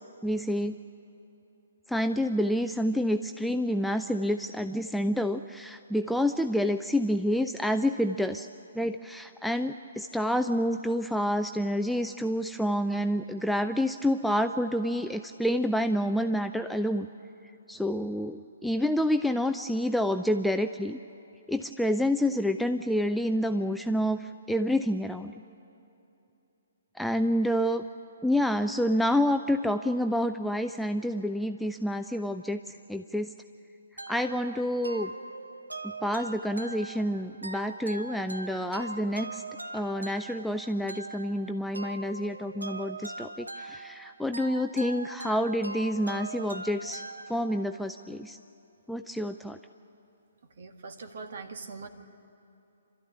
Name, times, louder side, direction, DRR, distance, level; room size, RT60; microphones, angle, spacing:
voice 1, 0.2-0.8 1.9-8.5 8.7-17.1 17.7-21.0 21.5-25.3 27.0-27.8 28.2-33.3 34.1-35.1 36.0-39.4 39.7-47.0 47.3-48.4 48.9-49.6, equal, ahead, 7 dB, 0.4 m, -28 dB
sound 1, 34.0-47.8, right 2 dB, 85° right, 1.1 m, -41 dB
voice 2, 50.6-51.9, right 4 dB, 60° right, 6 dB, 1.8 m, -41 dB
27.0 x 13.0 x 9.6 m, 2.8 s
figure-of-eight pair, 130°, 0 cm